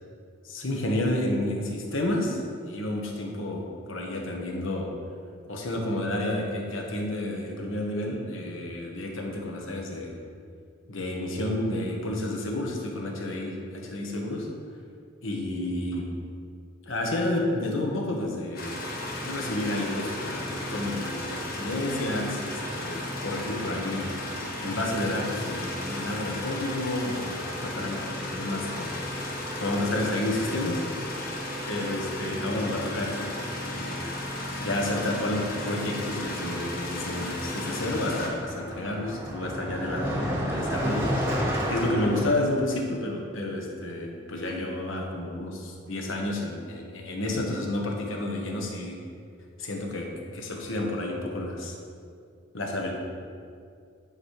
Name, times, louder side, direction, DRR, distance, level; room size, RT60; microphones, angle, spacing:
voice 1, 0.4-2.4 2.7-4.9 5.5-10.2 10.9-14.5 15.2-16.1 16.9-18.7 19.2-24.2 24.6-29.0 29.6-30.8 31.7-34.0 34.6-41.2 41.7-49.0 49.6-51.8 52.5-52.9, left 1 dB, 75° left, 0 dB, 1.3 m, -30 dB
sound 1, 18.6-38.3, left 1 dB, 45° left, 1.2 m, -34 dB
Car passing by, 34.8-35.1 35.3-42.3, equal, 10° right, 1.0 m, -32 dB
9.4 x 5.0 x 4.8 m, 2.3 s
head